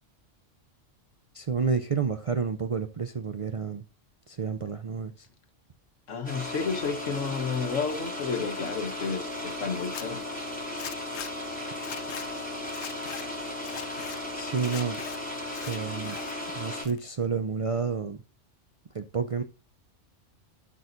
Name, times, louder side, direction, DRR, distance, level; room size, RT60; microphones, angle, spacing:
voice 1, 1.3-3.8 4.3-5.3 14.3-15.0 15.6-16.2 16.6-18.2 18.9-19.4, right 5 dB, 55° right, 0.3 m, -30 dB
voice 2, 6.1-10.2, left 5 dB, 85° left, 1.5 m, -31 dB
sound 1, 6.2-16.8, left 1 dB, 5° left, 3.9 m, -36 dB
Zipper (clothing), 9.8-10.0 10.8-11.3 11.8-12.3 12.7-13.2 13.6-14.2 14.6-15.2 15.5-16.3 16.6-17.3, left 9 dB, 70° left, 0.9 m, -41 dB
12.0 x 6.2 x 2.6 m
omnidirectional pair, 1.3 m